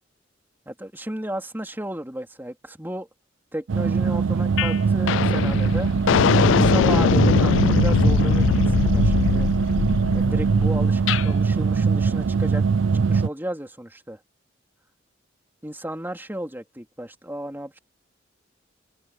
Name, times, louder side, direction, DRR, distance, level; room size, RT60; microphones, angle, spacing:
voice 1, 0.7-3.1 3.5-5.9 6.3-9.5 10.1-12.6 13.1-14.2 15.6-17.8, right 1 dB, 10° right, 3.1 m, -34 dB
sound 1, 3.7-13.3, right 5 dB, 80° right, 0.4 m, -21 dB
sound 2, 4.6-4.8 5.1-11.3, left 7 dB, 75° left, 0.3 m, -22 dB
open air
head